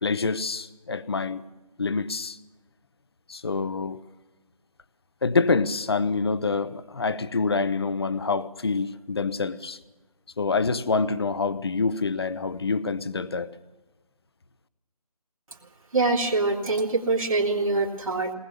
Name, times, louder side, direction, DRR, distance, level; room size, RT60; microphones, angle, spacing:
voice 1, 0.0-1.4 1.8-2.4 3.3-4.0 5.2-9.8 10.4-13.5, left 4 dB, 40° left, 0.7 m, -26 dB
voice 2, 15.9-18.3, right 3 dB, 55° right, 2.9 m, -24 dB
22.0 x 19.5 x 7.1 m
figure-of-eight pair, 160°, 20 cm